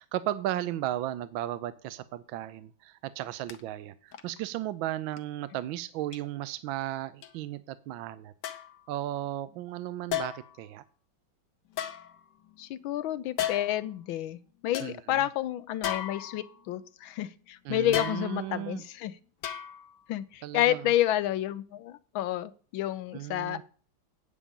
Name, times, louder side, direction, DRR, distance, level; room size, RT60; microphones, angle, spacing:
voice 1, 0.0-8.3 8.9-10.8 14.8-15.3 17.6-18.8 20.4-20.9 23.1-23.6, right 13 dB, 80° right, 15 dB, 1.4 m, -35 dB
sound 1, 3.5-3.6 4.1-4.4 5.1-5.2 6.1-6.2 7.2-7.3 8.4-8.8 10.1-10.6 11.7-12.6 13.4-13.9 14.3-14.4 14.7-14.9 15.8-16.7 17.9-18.6 19.4-20.0 20.3-20.4, left 10 dB, 65° left, 1.4 m, -35 dB
voice 2, 12.6-14.4 14.6-19.1 20.1-23.6, left 13 dB, 80° left, 15 dB, 1.5 m, -30 dB
8.7 x 8.5 x 5.3 m, 0.41 s
omnidirectional pair, 2.2 m